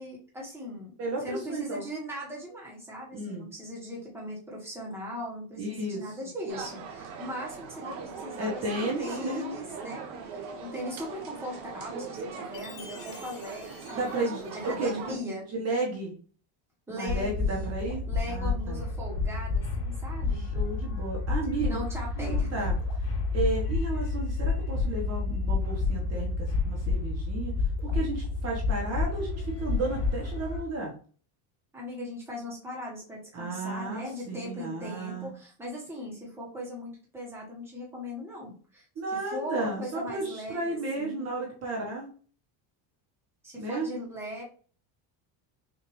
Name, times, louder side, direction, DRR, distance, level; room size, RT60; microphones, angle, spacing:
voice 1, 0.0-0.9 1.2-15.4 16.9-17.7 18.1-20.4 21.6-22.7 31.7-38.8 39.3-41.3 43.4-44.4, equal, 5° right, -4 dB, 1.3 m, -39 dB
voice 2, 1.0-1.9 3.1-3.5 5.6-6.1 8.4-9.5 14.0-15.2 15.5-16.1 16.9-18.0 18.3-18.8 20.3-21.8 22.2-22.8 23.3-27.5 27.8-30.9 33.3-35.3 39.0-42.1 43.6-43.9, right 2 dB, 30° right, -1 dB, 1.2 m, -33 dB
sound 1, 6.5-15.2, right 5 dB, 80° right, 1.3 m, -40 dB
Chime, 12.5-15.0, left 6 dB, 85° left, 1.4 m, -50 dB
sound 2, 17.1-30.6, left 4 dB, 60° left, 2.5 m, -29 dB
6.1 x 2.7 x 3.1 m, 0.41 s
cardioid pair, 165°, 48 cm